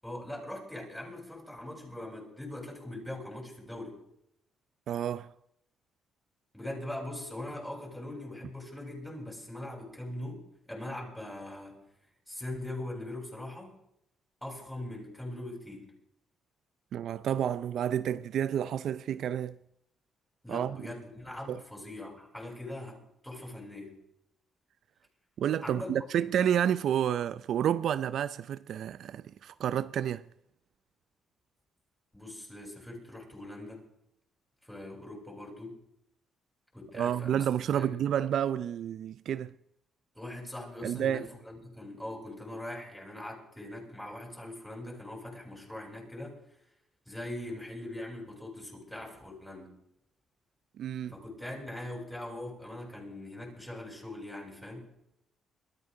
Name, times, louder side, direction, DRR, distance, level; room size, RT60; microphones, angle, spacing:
voice 1, 0.0-4.0 6.5-11.8 12.3-13.8 14.4-15.9 20.4-24.0 25.6-26.0 32.1-33.9 34.6-35.8 36.7-37.5 37.7-38.0 40.1-46.4 47.1-49.8 51.1-54.9, left 1 dB, 5° left, 7.9 m, -41 dB
voice 2, 4.9-5.3 16.9-19.6 20.5-20.9 21.5-21.6 25.4-30.2 36.9-39.5 40.8-41.3 50.8-51.1, right 9 dB, 70° right, 0.5 m, -30 dB
22.5 x 14.0 x 3.9 m
cardioid pair, 90°, 0 cm